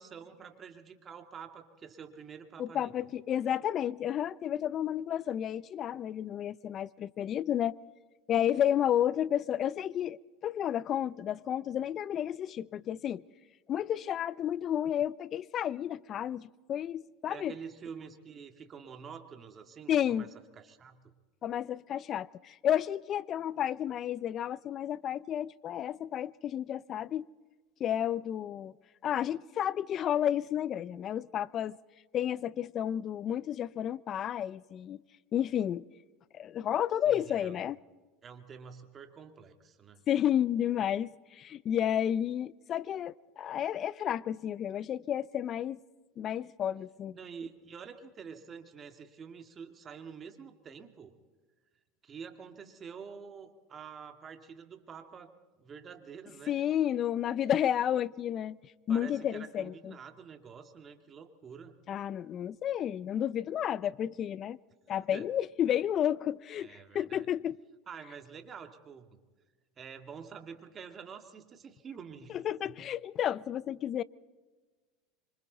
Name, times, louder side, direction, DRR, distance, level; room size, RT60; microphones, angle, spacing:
voice 1, 0.0-2.9 17.3-20.3 20.6-21.1 37.1-37.7 38.2-40.0 47.1-51.1 52.0-56.6 58.9-61.8 64.9-65.3 66.6-67.3 67.9-69.2 69.8-72.4 72.6-72.8, right 6 dB, 30° right, 2.2 m, -47 dB
voice 2, 2.6-7.8 8.3-13.2 13.7-17.5 19.9-20.3 21.4-27.3 27.8-28.7 29.0-31.8 32.1-35.0 35.3-35.9 36.3-37.8 40.1-45.8 46.2-47.2 56.5-58.6 58.9-59.9 61.9-64.6 64.9-67.6 72.3-74.0, left 10 dB, 40° left, 0.6 m, -31 dB
26.0 x 25.5 x 4.1 m
supercardioid pair, 105°, 0 cm